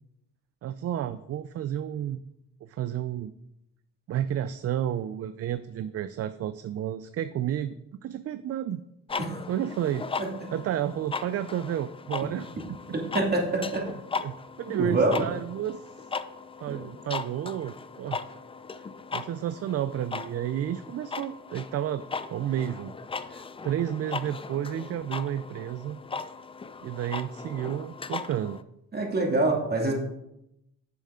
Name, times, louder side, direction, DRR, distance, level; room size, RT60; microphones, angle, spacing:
voice 1, 0.6-2.2 2.6-3.3 4.1-7.8 8.0-8.8 9.5-10.1 10.5-12.8 14.2-15.9 16.6-18.2 19.1-22.0 22.3-22.9 23.3-26.0 26.8-28.6, right 10 dB, 50° right, 12 dB, 0.5 m, -31 dB
sound 1, 9.1-28.6, left 4 dB, 20° left, 0.4 m, -38 dB
voice 2, 13.1-13.8 14.8-15.2 16.7-16.8 28.9-29.9, right 2 dB, 30° right, 0 dB, 2.4 m, -25 dB
9.7 x 7.0 x 3.7 m, 0.84 s
cardioid pair, 90°, 30 cm